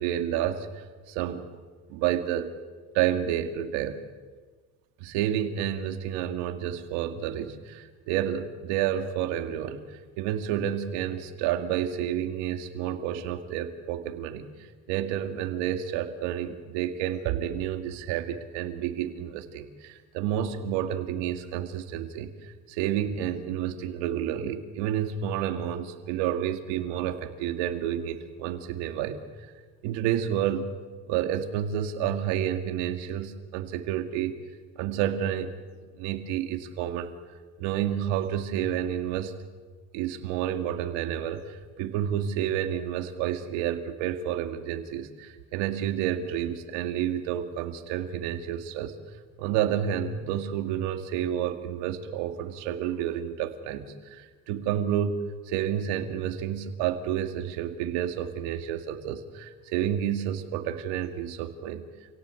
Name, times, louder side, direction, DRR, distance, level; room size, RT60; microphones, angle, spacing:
voice 1, 0.0-1.4 1.9-2.5 2.9-4.0 5.0-14.4 14.9-29.2 29.8-30.7 31.1-34.3 34.8-35.5 36.0-37.1 37.6-39.4 39.9-48.9 49.4-61.8, right 10 dB, 85° right, 7 dB, 2.3 m, -30 dB
28.0 x 17.5 x 8.4 m, 1.5 s
cardioid pair, 110°, 41 cm